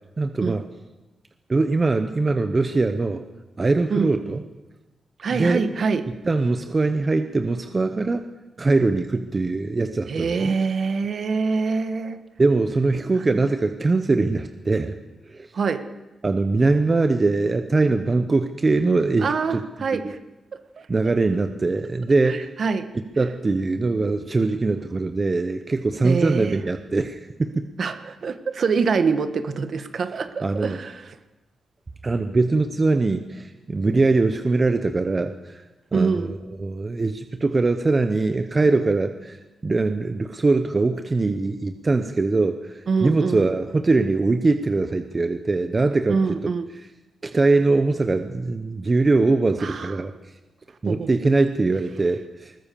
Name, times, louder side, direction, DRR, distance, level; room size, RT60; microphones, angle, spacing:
voice 1, 0.2-0.6 1.5-3.2 3.6-4.4 5.3-5.6 6.2-8.3 8.6-10.5 12.4-15.0 15.3-15.5 16.2-19.6 19.9-20.1 20.9-22.5 23.2-27.7 30.4-30.8 32.0-35.6 35.9-39.4 39.6-46.4 47.2-50.1 50.8-52.5, right 3 dB, 25° right, 8 dB, 0.9 m, -22 dB
voice 2, 5.2-6.1 10.1-12.2 15.5-15.9 19.2-20.2 20.5-20.9 22.3-22.9 26.0-26.6 27.8-31.2 35.9-36.3 42.9-43.5 46.1-46.7 49.6-50.0 50.8-51.1, right 5 dB, 50° right, 10 dB, 1.4 m, -25 dB
21.0 x 20.0 x 7.0 m, 1.1 s
wide cardioid pair, 150°, 0 cm